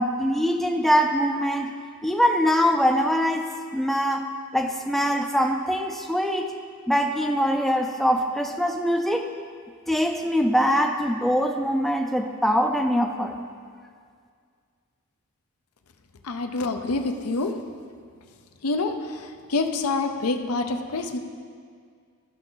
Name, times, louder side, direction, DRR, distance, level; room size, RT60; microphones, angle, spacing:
voice 1, 0.0-1.7 2.0-6.5 6.9-9.2 9.9-13.3, equal, ahead, 3 dB, 0.3 m, -23 dB
voice 2, 16.3-17.6 18.6-18.9 19.5-21.2, left 3 dB, 80° left, 6 dB, 0.7 m, -26 dB
13.5 x 5.8 x 3.9 m, 2.1 s
head